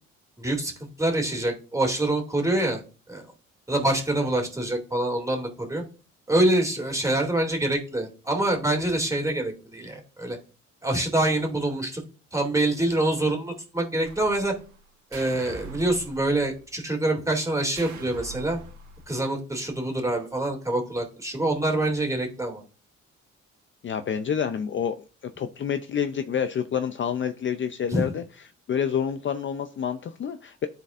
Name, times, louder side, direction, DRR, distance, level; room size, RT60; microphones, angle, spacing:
voice 1, 0.4-0.7 1.0-3.3 3.7-5.8 6.3-10.4 10.8-12.0 12.3-14.5 15.1-18.6 19.1-22.6 27.9-28.1, right 1 dB, 10° right, 1 dB, 2.5 m, -25 dB
sound 1, 14.0-14.8 15.1-16.7 17.8-19.1, right 4 dB, 75° right, 1.6 m, -43 dB
voice 2, 23.8-28.2 28.7-30.7, left 8 dB, 40° left, 9 dB, 0.5 m, -28 dB
12.5 x 4.2 x 2.5 m, 0.36 s
cardioid pair, 90°, 30 cm